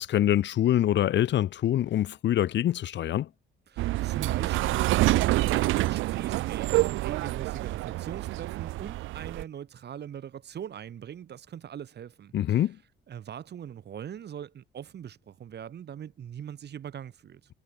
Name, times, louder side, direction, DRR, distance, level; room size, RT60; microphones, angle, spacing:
voice 1, 0.0-3.3 12.3-12.8, left 12 dB, 65° left, 0.9 m, -25 dB
voice 2, 3.7-12.6 13.1-17.5, right 9 dB, 55° right, 2.0 m, -41 dB
sound 1, 3.8-9.4, right 17 dB, 85° right, 0.5 m, -27 dB
cardioid pair, 90°, 20 cm